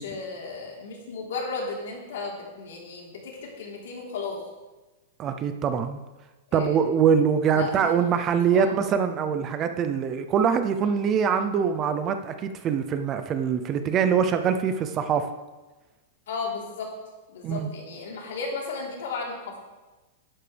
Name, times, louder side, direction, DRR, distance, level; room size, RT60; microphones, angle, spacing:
voice 1, 0.0-4.4 6.5-6.8 7.5-7.9 8.5-8.7 16.3-16.9 17.3-19.6, left 4 dB, 70° left, -2 dB, 3.5 m, -34 dB
voice 2, 5.2-6.0 6.5-15.3 17.4-17.7, right 7 dB, 20° right, 8 dB, 0.5 m, -23 dB
11.5 x 11.5 x 3.4 m, 1.2 s
supercardioid pair, 180°, 0 cm